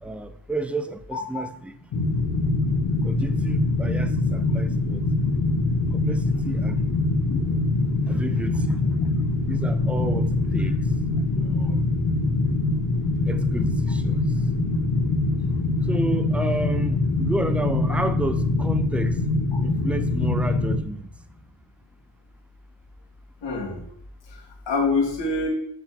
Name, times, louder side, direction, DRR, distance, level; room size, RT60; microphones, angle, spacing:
voice 1, 0.0-1.8 3.0-5.0 5.9-6.9 8.1-9.1 9.5-11.0 11.3-11.8 13.2-14.5 15.4-19.2 19.6-21.1, right 2 dB, 5° right, 0.4 m, -32 dB
sound 1, 1.9-20.8, left 2 dB, 65° left, 1.2 m, -23 dB
voice 2, 7.3-7.7 23.4-23.9 24.3-25.5, left 3 dB, 90° left, 2.3 m, -26 dB
6.7 x 4.3 x 5.9 m
wide cardioid pair, 115°, 42 cm